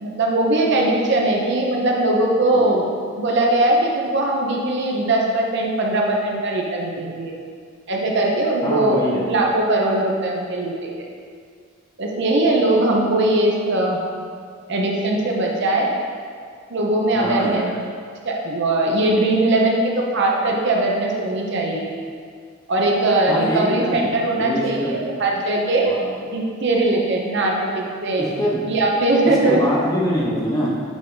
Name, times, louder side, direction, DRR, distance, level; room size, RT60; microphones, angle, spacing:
voice 1, 0.0-2.9 3.2-7.3 7.9-9.0 9.3-11.1 12.0-14.0 14.7-15.9 16.7-17.6 18.3-21.9 22.7-26.0 26.3-28.3 28.7-29.6, right 2 dB, 55° right, -1 dB, 0.8 m, -20 dB
voice 2, 8.6-9.3 17.1-17.7 23.3-25.0 25.9-26.2 28.2-28.7 29.2-30.8, equal, 15° left, -4 dB, 0.9 m, -24 dB
8.2 x 3.6 x 3.8 m, 2.1 s
head